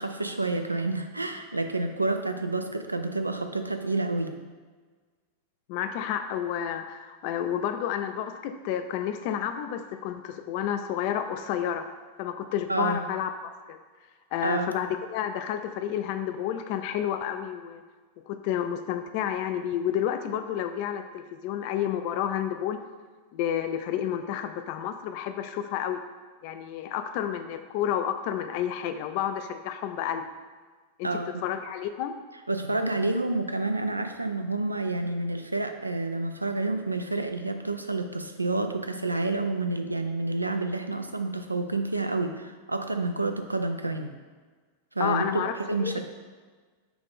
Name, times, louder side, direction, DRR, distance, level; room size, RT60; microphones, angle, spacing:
voice 1, 0.0-4.3 12.7-13.0 14.4-14.7 31.0-31.4 32.5-44.1 45.0-45.4 45.7-46.0, right 2 dB, 85° right, 6 dB, 0.3 m, -29 dB
voice 2, 5.7-11.9 12.2-13.3 13.7-13.8 14.3-17.8 18.3-22.8 23.3-26.0 26.4-30.3 31.0-31.1 31.4-32.1 45.0-45.5 45.8-46.0, left 10 dB, 45° left, 8 dB, 0.3 m, -30 dB
6.0 x 2.4 x 3.5 m, 1.5 s
figure-of-eight pair, 90°, 0 cm